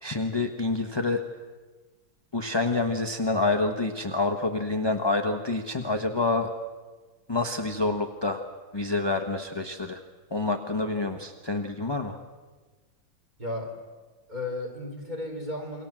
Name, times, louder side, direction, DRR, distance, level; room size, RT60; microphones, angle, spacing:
voice 1, 0.0-1.2 2.3-6.5 7.3-8.4 8.7-10.0 10.3-12.2, left 3 dB, 15° left, 4 dB, 0.8 m, -27 dB
voice 2, 13.4-13.8 14.3-15.9, left 2 dB, 20° right, 3 dB, 4.9 m, -34 dB
28.5 x 23.0 x 7.6 m, 1.3 s
omnidirectional pair, 2.4 m